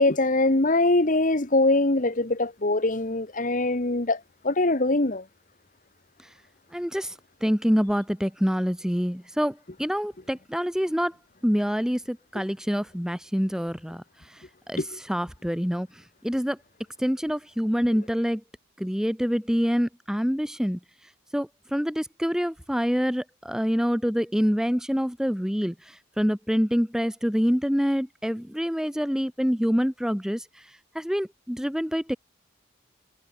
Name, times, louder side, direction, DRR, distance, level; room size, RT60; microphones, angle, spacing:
voice 1, 0.0-5.2 14.8-14.9, left 2 dB, 40° left, 1.3 m, -23 dB
voice 2, 6.7-11.2 11.4-16.6 17.0-18.4 18.8-32.2, equal, 5° right, 1.3 m, -26 dB
head